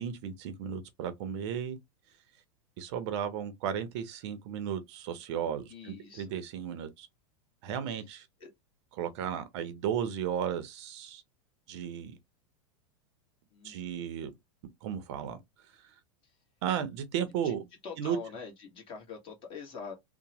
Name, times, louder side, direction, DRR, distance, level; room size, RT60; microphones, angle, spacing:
voice 1, 0.0-1.8 2.8-7.1 7.6-8.3 9.0-11.2 11.7-12.2 13.6-14.3 14.8-15.4 16.6-17.6 18.0-18.2, right 8 dB, 60° right, 0.6 m, -34 dB
voice 2, 5.7-6.4 7.9-8.1 8.4-8.5 13.5-14.1 16.2-16.4 17.4-17.5 17.8-19.9, left 5 dB, 30° left, 1.2 m, -45 dB
2.8 x 2.0 x 2.8 m
supercardioid pair, 140°, 17 cm